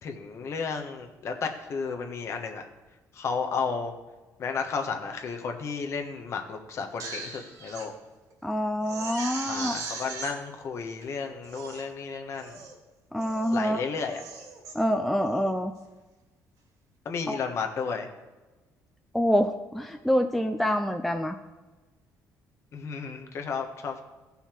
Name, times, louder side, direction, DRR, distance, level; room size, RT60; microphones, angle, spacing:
voice 1, 0.0-2.7 3.1-3.9 4.4-7.9 9.5-12.6 13.5-14.2 17.0-18.1 22.7-24.0, left 5 dB, 45° left, 4 dB, 1.3 m, -33 dB
Crying sobbing, 6.8-7.9 8.3-8.4 8.8-10.3 11.0-11.1 11.4-11.9 12.4-12.8 13.2-13.6 14.0-14.7 15.2-15.5, right 4 dB, 65° right, 2.5 m, -39 dB
voice 2, 8.4-9.8 13.1-13.8 14.7-15.7 17.3-17.4 19.1-21.4, equal, ahead, 5 dB, 0.5 m, -26 dB
16.0 x 5.6 x 4.5 m, 1.2 s
cardioid pair, 140°, 6 cm